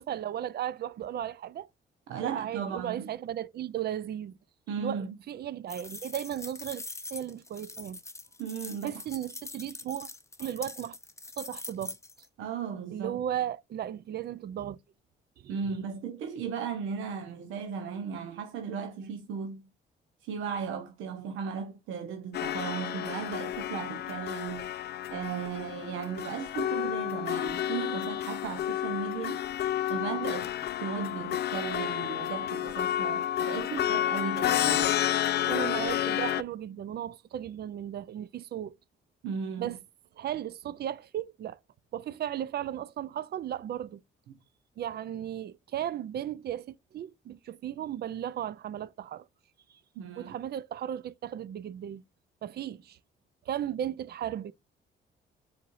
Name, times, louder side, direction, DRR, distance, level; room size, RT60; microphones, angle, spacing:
voice 1, 0.0-1.7 2.2-4.3 4.8-8.0 8.8-10.1 10.4-11.0 11.4-12.0 12.9-14.8 15.4-15.8 35.5-38.8 39.6-39.8 40.2-41.6 41.9-44.0 44.8-49.3 49.7-49.8 50.2-52.0 52.4-53.0 53.5-54.5, right 11 dB, 55° right, 0.5 m, -35 dB
voice 2, 2.1-3.1 4.7-5.2 8.4-9.0 12.4-13.2 15.5-19.6 20.2-29.4 29.9-30.5 30.8-34.9 39.2-39.8 50.0-50.3, right 6 dB, 90° right, 0.9 m, -36 dB
sound 1, 5.7-12.3, left 3 dB, 15° left, 0.7 m, -43 dB
sound 2, 22.3-36.4, left 12 dB, 55° left, 0.4 m, -30 dB
4.6 x 4.2 x 2.5 m
cardioid pair, 90°, 20 cm